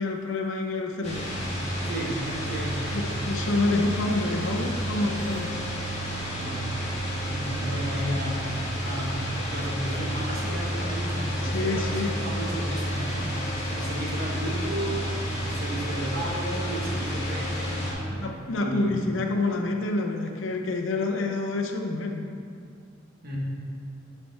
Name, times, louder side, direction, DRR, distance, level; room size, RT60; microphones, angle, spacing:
voice 1, 0.0-1.3 2.9-5.5 11.5-12.1 18.2-22.3, left 2 dB, 75° left, 3 dB, 0.7 m, -27 dB
sound 1, 1.0-17.9, equal, 35° left, 1.8 m, -30 dB
voice 2, 1.8-3.2 6.3-6.7 7.2-15.1 15.4-19.0 23.2-23.4, right 1 dB, 50° right, -4 dB, 1.6 m, -34 dB
9.9 x 4.6 x 4.2 m, 2.3 s
head